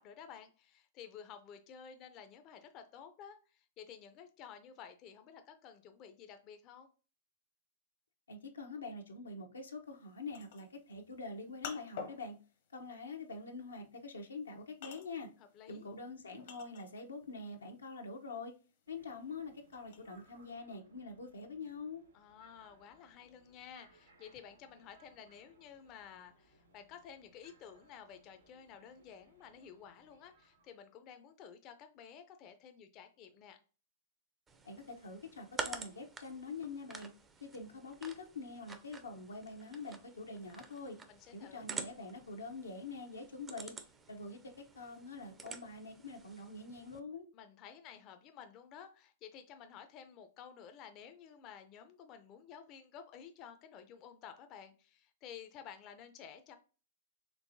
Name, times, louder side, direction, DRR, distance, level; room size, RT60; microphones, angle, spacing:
voice 1, 0.0-6.9 15.5-15.9 22.1-33.6 41.1-41.7 47.3-56.6, left 8 dB, 40° left, 0.5 m, -53 dB
voice 2, 8.3-12.4 12.7-15.3 15.7-18.5 18.9-22.0 34.6-37.1 37.4-41.0 41.3-43.7 44.1-47.3, left 3 dB, 90° left, 0.8 m, -45 dB
sound 1, 9.9-17.2 17.6-20.5, left 6 dB, 60° left, 0.8 m, -50 dB
sound 2, 18.9-30.8, right 2 dB, 85° right, 1.2 m, -67 dB
sound 3, 34.5-47.0, right 4 dB, 15° right, 0.5 m, -49 dB
4.5 x 3.1 x 2.6 m
hypercardioid pair, 115°, 0 cm